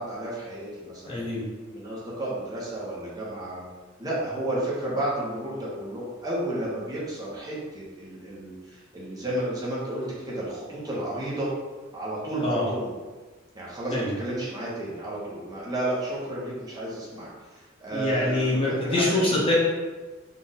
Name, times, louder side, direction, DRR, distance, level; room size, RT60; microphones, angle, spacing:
voice 1, 0.0-1.2 1.7-3.7 4.0-11.5 11.9-12.9 13.5-19.4, right 1 dB, 20° right, -6 dB, 1.1 m, -32 dB
voice 2, 1.0-1.4 12.4-12.6 13.9-14.1 17.9-19.5, left 2 dB, 25° left, -5 dB, 0.7 m, -25 dB
3.8 x 2.6 x 4.0 m, 1.3 s
head